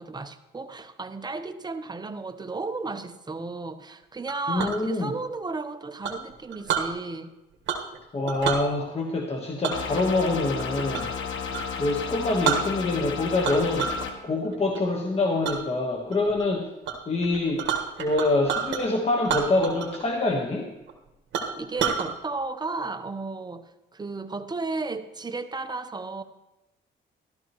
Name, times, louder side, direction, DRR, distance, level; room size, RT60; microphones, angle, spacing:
voice 1, 0.0-7.3 21.6-26.2, right 3 dB, 20° right, 9 dB, 0.8 m, -34 dB
Chink clink, 4.3-4.8 6.0-6.9 7.7-8.0 8.3-8.6 9.6-11.2 11.5-11.7 12.1-12.2 12.4-13.1 13.4-14.1 14.4-14.8 15.4-15.6 16.1-16.5 16.8-17.0 17.2-18.8 19.2-20.0 20.3-20.4 20.9-21.0 21.3-22.1, right 7 dB, 70° right, 1.5 m, -29 dB
voice 2, 4.5-5.1 8.1-11.1 11.8-13.9 14.2-16.7 17.1-17.6 18.0-20.7, left 2 dB, 30° left, 1 dB, 1.3 m, -25 dB
sound 1, 9.7-14.1, left 6 dB, 75° left, 1.3 m, -33 dB
14.0 x 12.5 x 3.0 m, 0.99 s
cardioid pair, 90°, 20 cm